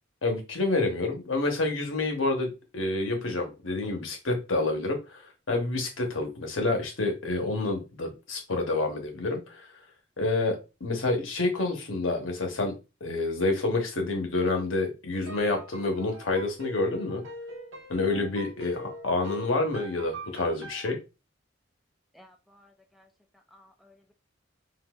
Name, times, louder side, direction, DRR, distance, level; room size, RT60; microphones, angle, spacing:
voice 1, 0.2-5.2 5.5-9.7 10.2-12.7 13.0-17.2 17.9-21.0, left 2 dB, 80° left, 1.0 m, -28 dB
sound 1, 15.1-20.9, equal, 80° right, 1.1 m, -43 dB
voice 2, 22.1-23.1 23.5-24.1, left 1 dB, ahead, 0.3 m, -57 dB
3.8 x 2.6 x 2.3 m
head